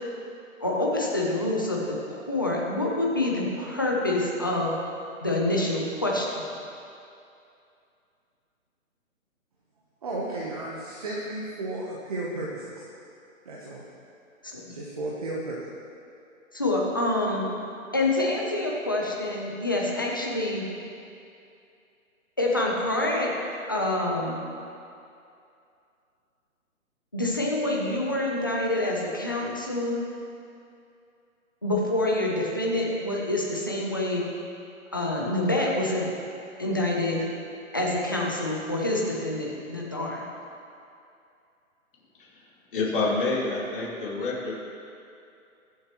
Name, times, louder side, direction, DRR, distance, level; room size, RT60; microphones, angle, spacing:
voice 1, 0.6-4.7 5.2-6.4 14.5-14.6 16.5-17.5 17.9-20.6 22.4-23.3 23.7-24.4 27.1-30.0 31.6-34.2 34.9-36.0 36.6-37.3 37.7-40.2, left 1 dB, 15° left, -3 dB, 0.6 m, -26 dB
voice 2, 10.0-12.8 13.4-13.8 14.7-15.6, right 2 dB, 25° right, -4 dB, 1.0 m, -33 dB
voice 3, 42.7-44.5, left 3 dB, 40° left, -6 dB, 2.8 m, -28 dB
22.5 x 7.6 x 3.0 m, 2.6 s
hypercardioid pair, 170°, 42 cm